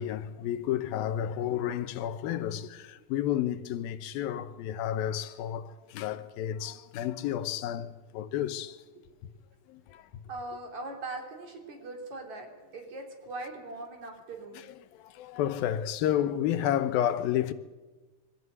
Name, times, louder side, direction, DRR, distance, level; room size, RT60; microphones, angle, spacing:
voice 1, 0.0-8.8 9.2-9.3 9.7-10.2 14.9-17.5, left 11 dB, 85° left, 2.8 m, -31 dB
voice 2, 10.3-14.6, right 2 dB, 55° right, 4.7 m, -40 dB
24.0 x 14.5 x 9.5 m
omnidirectional pair, 4.1 m